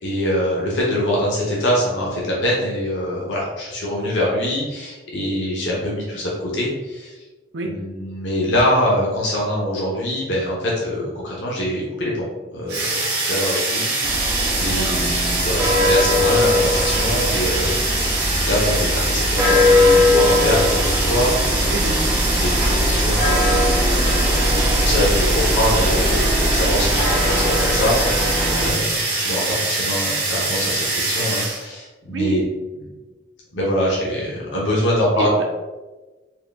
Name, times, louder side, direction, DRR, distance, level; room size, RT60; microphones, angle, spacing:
voice 1, 0.0-7.2 7.7-17.7 18.0-21.7 22.3-32.4 32.8-32.9 33.5-35.5, left 1 dB, 80° left, -4 dB, 0.9 m, -24 dB
sound 1, 12.7-31.6, right 2 dB, 60° right, 1.1 m, -24 dB
sound 2, 14.0-28.7, left 1 dB, 20° right, 0.6 m, -20 dB
voice 2, 14.7-15.1 21.7-22.2 28.5-28.9 32.1-32.4 35.2-35.5, right 2 dB, 85° right, 2 dB, 0.7 m, -27 dB
4.3 x 2.3 x 3.5 m, 1.2 s
head